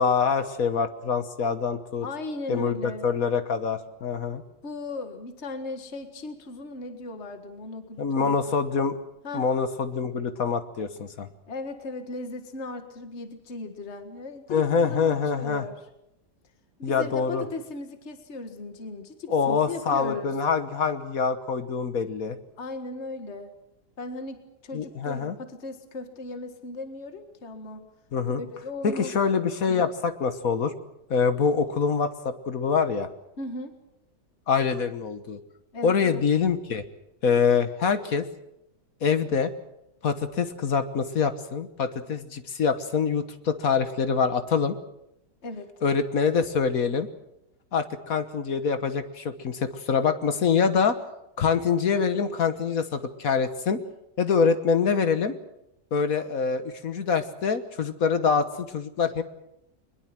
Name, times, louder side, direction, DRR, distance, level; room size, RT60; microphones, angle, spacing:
voice 1, 0.0-2.1 2.5-2.7 3.0-4.4 8.0-9.0 9.3-11.3 14.5-15.7 16.8-17.4 19.3-22.4 24.7-25.4 28.1-28.4 28.8-30.7 31.1-33.1 34.5-35.4 35.8-36.8 37.2-38.3 39.0-39.5 40.0-44.7 45.8-47.1 47.7-51.0 51.4-53.8 54.2-55.3 55.9-59.2, left 5 dB, 55° left, 10 dB, 1.6 m, -25 dB
voice 2, 2.0-3.1 4.6-8.3 9.2-9.5 11.5-15.8 16.8-20.3 22.6-23.5 24.0-27.9 28.4-29.1 29.7-29.9 33.4-33.7 35.7-36.2 45.4-45.7, left 2 dB, 40° left, 7 dB, 2.0 m, -37 dB
22.0 x 21.5 x 7.6 m, 0.86 s
omnidirectional pair, 1.8 m